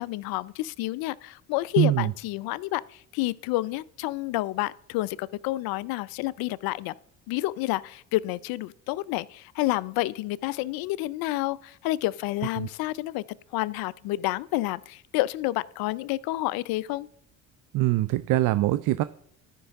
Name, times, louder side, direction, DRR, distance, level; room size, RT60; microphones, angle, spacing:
voice 1, 0.0-6.9 7.3-13.2 13.5-17.1, left 18 dB, 65° left, 0.5 m, -29 dB
voice 2, 1.8-2.1 12.6-12.7 17.7-19.0, right 15 dB, 55° right, 0.4 m, -23 dB
13.0 x 5.4 x 3.5 m
hypercardioid pair, 70°, 39 cm